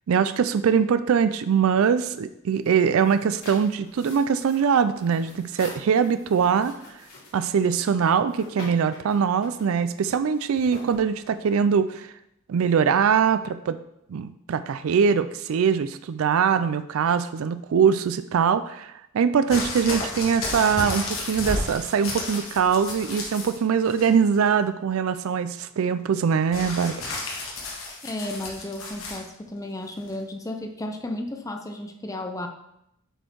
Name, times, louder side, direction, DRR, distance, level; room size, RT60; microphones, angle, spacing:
voice 1, 0.1-6.7 7.3-12.1 12.5-13.8 14.1-26.9, right 6 dB, 75° right, 12 dB, 0.4 m, -22 dB
sound 1, 2.5-11.7, left 2 dB, 90° left, 2.9 m, -46 dB
sound 2, 19.5-23.6 23.9-24.5 26.5-29.2 30.1-30.2, left 2 dB, 70° left, 1.9 m, -32 dB
voice 2, 28.0-32.5, left 1 dB, 15° left, 5 dB, 0.5 m, -33 dB
7.9 x 4.3 x 4.6 m, 0.82 s
head